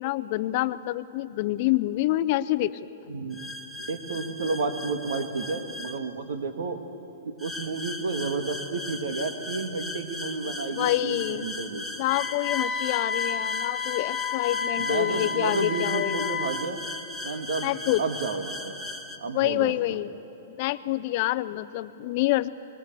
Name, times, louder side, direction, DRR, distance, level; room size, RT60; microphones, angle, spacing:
voice 1, 0.0-2.8 10.7-11.5 12.0-16.3 17.6-18.0 19.3-20.1 20.5-22.5, left 16 dB, 45° left, 14 dB, 0.5 m, -27 dB
voice 2, 3.1-3.4 3.9-6.8 7.4-11.9 14.6-16.8 17.2-17.7 18.0-18.7 19.2-19.7, right 4 dB, 80° right, 7 dB, 1.9 m, -31 dB
sound 1, 3.3-6.0 7.4-19.2, left 1 dB, 5° right, 1.1 m, -38 dB
Wind instrument woodwind instrument, 12.0-16.6, left 6 dB, 25° left, 0.9 m, -30 dB
21.5 x 21.0 x 6.8 m, 2.8 s
hypercardioid pair, 150°, 0 cm